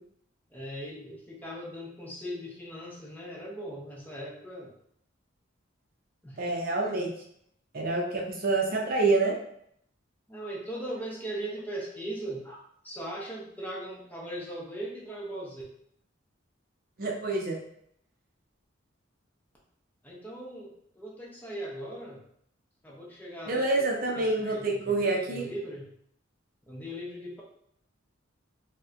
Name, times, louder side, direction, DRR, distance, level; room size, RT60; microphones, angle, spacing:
voice 1, 0.5-4.7 6.2-6.4 10.3-12.6 12.8-15.6 20.0-22.2 22.8-23.6 24.2-25.9 26.7-27.4, right 1 dB, 10° left, -4 dB, 0.6 m, -39 dB
voice 2, 6.4-7.1 7.7-9.3 17.0-17.6 23.5-25.4, right 3 dB, 45° right, -1 dB, 0.5 m, -27 dB
4.0 x 2.1 x 2.4 m, 0.70 s
head